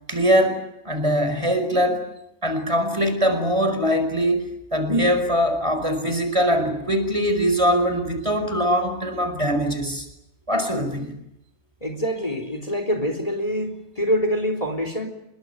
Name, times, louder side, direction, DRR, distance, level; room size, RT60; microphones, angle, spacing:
voice 1, 0.1-2.0 2.4-10.1 10.5-11.2, equal, 30° right, 7 dB, 5.1 m, -22 dB
voice 2, 11.8-15.1, equal, 30° left, 5 dB, 3.9 m, -25 dB
27.0 x 22.5 x 9.3 m, 0.84 s
omnidirectional pair, 1.1 m